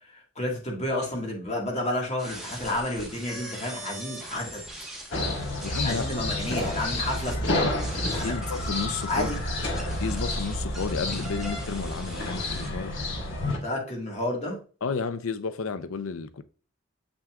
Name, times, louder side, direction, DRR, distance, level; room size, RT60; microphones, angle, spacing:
voice 1, 0.1-4.6 5.8-8.4 9.1-9.4 13.6-14.6, left 1 dB, 30° left, 1.9 m, -31 dB
sound 1, 2.2-7.4 7.8-12.7, right 1 dB, ahead, 1.3 m, -41 dB
sound 2, 5.1-13.6, left 1 dB, 60° left, 1.4 m, -30 dB
voice 2, 5.6-6.1 7.6-7.7 8.2-9.3 10.0-12.9 14.8-16.4, left 5 dB, 90° left, 0.6 m, -32 dB
6.9 x 6.1 x 2.4 m
head